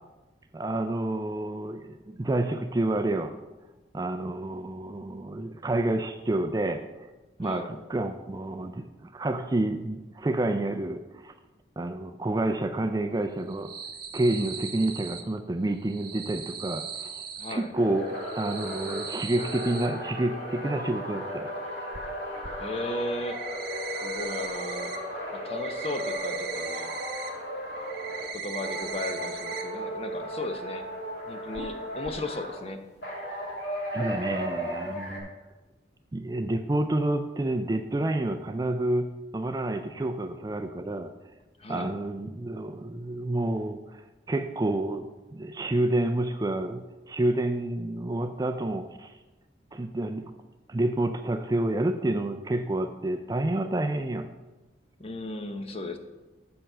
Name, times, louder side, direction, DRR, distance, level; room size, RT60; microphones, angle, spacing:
voice 1, 0.5-3.3 3.9-7.1 7.4-11.3 11.8-13.7 14.1-17.2 17.5-18.1 18.3-21.5 33.9-35.3 36.1-41.1 41.7-49.2 49.7-50.3 50.7-54.3, right 1 dB, 20° right, 8 dB, 0.4 m, -29 dB
sound 1, 13.4-15.2 15.8-17.5 18.1-19.9 21.9-22.0 22.4-22.5 23.0-25.0 25.3-27.3 27.6-29.6 29.9-30.0 30.4-30.5 31.5-31.7 32.0-32.1, right 6 dB, 55° right, 0.9 m, -38 dB
voice 2, 17.4-17.7 22.6-23.4 23.9-24.9 25.3-26.9 28.3-30.9 31.3-32.8 41.6-41.9 55.0-56.0, left 2 dB, 35° left, 6 dB, 0.8 m, -35 dB
sound 2, 17.7-28.3 28.6-32.6 33.0-35.2, equal, 65° left, 2.2 m, -35 dB
7.5 x 6.9 x 5.5 m, 1.1 s
head